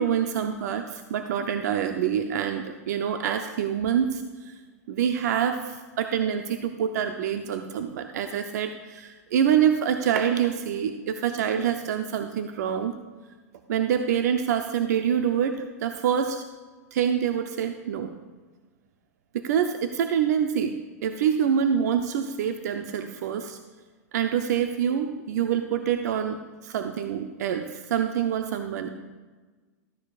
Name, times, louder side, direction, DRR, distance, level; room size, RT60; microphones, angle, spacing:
voice 1, 0.0-4.5 4.9-12.9 13.7-16.4 16.9-18.1 19.3-20.7 21.0-23.6 24.1-28.9, right 8 dB, 75° right, 7 dB, 0.6 m, -26 dB
13.5 x 10.0 x 2.4 m, 1.3 s
hypercardioid pair, 125°, 9 cm